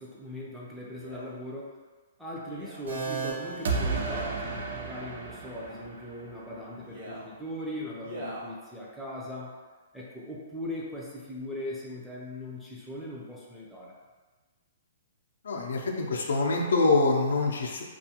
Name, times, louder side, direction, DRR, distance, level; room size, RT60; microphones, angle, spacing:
voice 1, 0.0-1.8 2.2-9.6 9.9-13.9, left 1 dB, ahead, -6 dB, 0.4 m, -39 dB
Male speech man speaking, 0.9-1.3 2.4-2.9 4.0-4.5 5.4-5.9 6.8-7.3 8.0-8.5 9.2-9.3, right 1 dB, 50° right, 0.9 m, -43 dB
sound 1, 2.9-4.8, right 5 dB, 85° right, 1.0 m, -37 dB
sound 2, 3.7-6.6, right 4 dB, 70° right, 0.4 m, -33 dB
voice 2, 15.4-17.8, left 3 dB, 90° left, 1 dB, 0.4 m, -25 dB
2.4 x 2.3 x 2.8 m, 1.4 s
hypercardioid pair, 165°, 0 cm